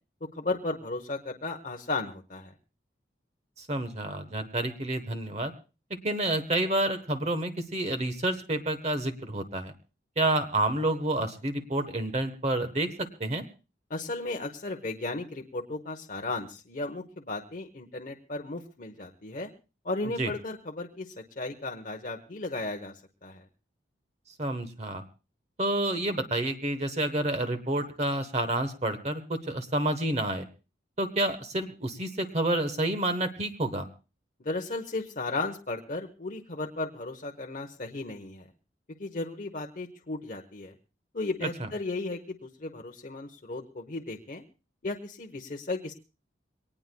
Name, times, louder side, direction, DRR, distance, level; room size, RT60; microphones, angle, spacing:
voice 1, 0.3-2.5 13.9-19.5 19.8-22.9 23.2-23.4 34.4-38.5 39.0-40.7 41.1-44.4 44.8-45.9, left 2 dB, 45° left, 2 dB, 0.9 m, -35 dB
voice 2, 3.6-5.5 6.0-9.7 10.2-13.4 20.2-20.3 24.4-25.0 25.6-30.5 31.0-33.9 41.6-41.7, right 1 dB, 35° right, 9 dB, 1.0 m, -29 dB
23.5 x 18.5 x 2.2 m, 0.31 s
head